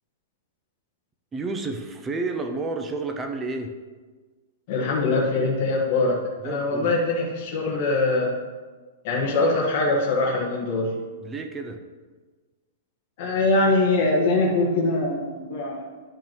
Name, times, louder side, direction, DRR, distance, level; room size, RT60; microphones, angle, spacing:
voice 1, 1.3-3.8 6.4-7.0 11.2-11.8, right 3 dB, 10° right, 6 dB, 0.6 m, -30 dB
voice 2, 4.7-8.3 9.0-10.9 13.2-15.9, left 2 dB, 40° left, -3 dB, 1.5 m, -23 dB
10.5 x 5.4 x 4.6 m, 1.4 s
supercardioid pair, 170°, 0 cm